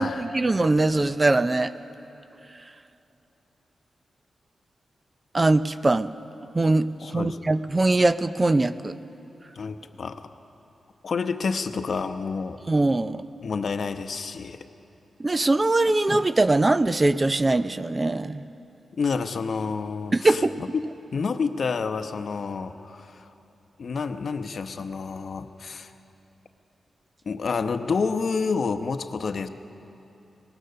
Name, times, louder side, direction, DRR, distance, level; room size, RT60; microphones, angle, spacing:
voice 1, 0.0-1.7 5.3-6.1 6.5-9.0 12.7-13.2 15.2-18.5 20.1-20.6, right 2 dB, 25° right, 13 dB, 0.5 m, -22 dB
voice 2, 7.0-7.4 9.6-10.2 11.0-12.6 13.4-14.6 18.9-20.8 21.1-23.3 23.8-25.9 27.3-29.5, left 5 dB, 55° left, 8 dB, 0.9 m, -29 dB
23.5 x 19.0 x 6.7 m, 3.0 s
wide cardioid pair, 120°, 0 cm